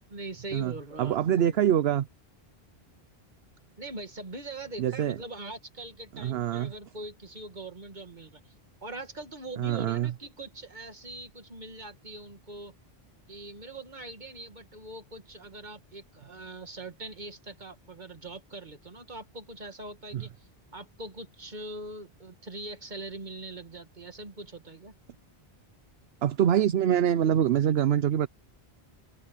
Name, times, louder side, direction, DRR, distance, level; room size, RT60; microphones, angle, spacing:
voice 1, 0.1-1.6 3.8-8.5 8.8-12.7 13.3-20.5 20.7-24.9, right 2 dB, 45° right, 2.2 m, -42 dB
voice 2, 1.0-2.1 4.8-5.2 6.1-6.7 9.6-10.1 20.1-20.2 26.2-28.3, right 10 dB, 75° right, 0.9 m, -24 dB
omnidirectional pair, 1.1 m